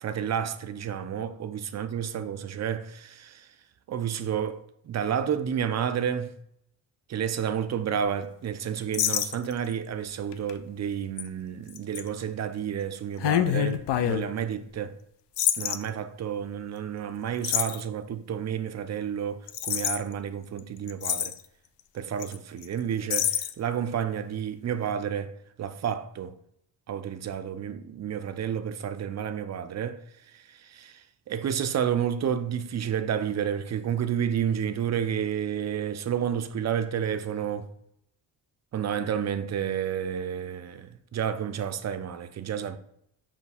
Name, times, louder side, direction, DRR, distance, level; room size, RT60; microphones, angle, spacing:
voice 1, 0.0-3.5 3.9-6.3 7.1-15.0 15.5-21.3 21.9-26.4 26.9-30.0 30.3-37.7 38.7-42.8, right 8 dB, 35° right, 0.4 m, -30 dB
sound 1, 8.9-9.7 10.3-10.5 11.2-11.3 11.7-12.0 13.2-14.2 15.4-15.8 17.4-17.8 19.5-20.0 20.6-20.7 20.9-21.4 22.2-22.4 22.6-22.7 23.1-23.5, left 11 dB, 60° left, 0.5 m, -26 dB
5.7 x 2.2 x 4.1 m
cardioid pair, 75°, 48 cm